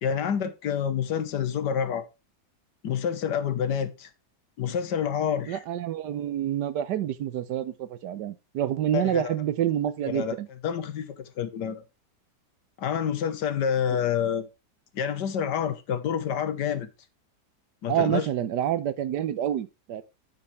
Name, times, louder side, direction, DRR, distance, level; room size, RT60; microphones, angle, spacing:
voice 1, 0.0-2.1 2.8-4.1 4.6-5.6 8.9-9.3 10.1-10.4 10.6-11.8 12.8-14.5 14.9-16.9 17.8-18.3, left 8 dB, 85° left, 1.7 m, -28 dB
voice 2, 5.5-10.5 17.9-20.0, right 11 dB, 80° right, 1.4 m, -28 dB
8.7 x 8.0 x 3.2 m
omnidirectional pair, 1.8 m